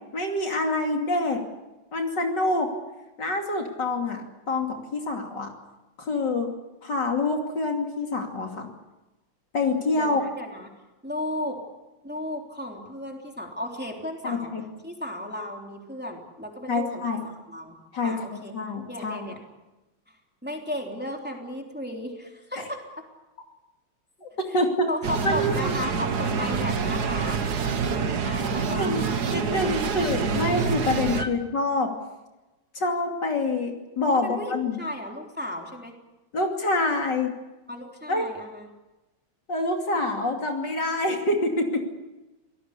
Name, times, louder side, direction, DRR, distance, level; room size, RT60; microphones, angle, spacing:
voice 1, 0.1-1.4 1.9-2.7 3.2-5.5 6.0-6.5 6.8-8.7 9.5-10.2 14.2-14.6 16.7-17.2 17.9-19.3 22.6-22.7 24.2-24.9 25.2-25.7 28.8-29.0 29.3-31.9 32.7-34.8 36.3-37.4 38.1-38.2 39.5-41.8, left 2 dB, 55° left, 2 dB, 3.4 m, -26 dB
voice 2, 9.9-10.7 11.0-11.6 12.0-14.5 14.8-18.5 18.9-19.4 20.4-23.1 24.5-24.6 24.9-29.1 29.6-29.9 31.2-31.3 34.1-35.9 37.7-38.7, left 1 dB, 5° right, 1 dB, 3.3 m, -35 dB
sound 1, 25.0-31.2, right 5 dB, 55° right, 1.8 m, -27 dB
26.5 x 18.5 x 8.4 m, 1.1 s
omnidirectional pair, 2.3 m